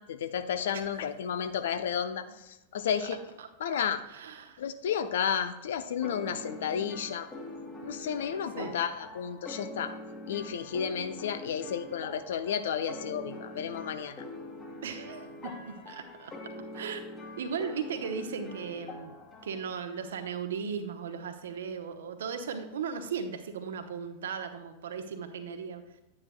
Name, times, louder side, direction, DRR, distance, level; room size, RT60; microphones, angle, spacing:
voice 1, 0.0-2.2 2.7-3.2 3.6-4.0 4.6-7.3 7.8-9.9 10.3-14.2, left 8 dB, 60° left, 10 dB, 0.6 m, -32 dB
voice 2, 4.1-4.6 8.6-8.8 14.8-16.3 16.7-17.0 17.4-26.0, right 6 dB, 60° right, 8 dB, 0.9 m, -37 dB
sound 1, 6.0-19.7, left 1 dB, 25° left, 1.7 m, -44 dB
9.7 x 9.6 x 2.2 m, 0.97 s
figure-of-eight pair, 90°, 0 cm